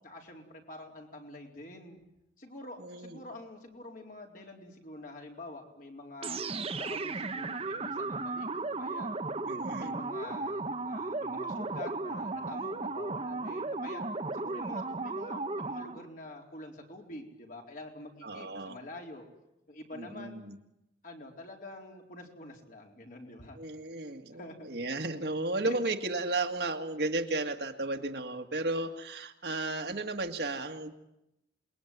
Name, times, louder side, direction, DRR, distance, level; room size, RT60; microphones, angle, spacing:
voice 1, 0.0-2.0 2.4-6.4 6.8-9.1 9.8-14.1 14.3-19.3 19.7-20.4 21.0-23.6 24.4-24.7 25.6-25.8, left 2 dB, 50° left, 1 dB, 4.3 m, -46 dB
voice 2, 2.8-3.2 9.5-9.9 18.2-18.8 19.9-20.6 23.5-30.9, right 2 dB, 65° right, 5 dB, 2.0 m, -34 dB
sound 1, 6.2-16.1, right 3 dB, 35° right, 1.1 m, -35 dB
27.5 x 21.5 x 9.4 m, 0.89 s
head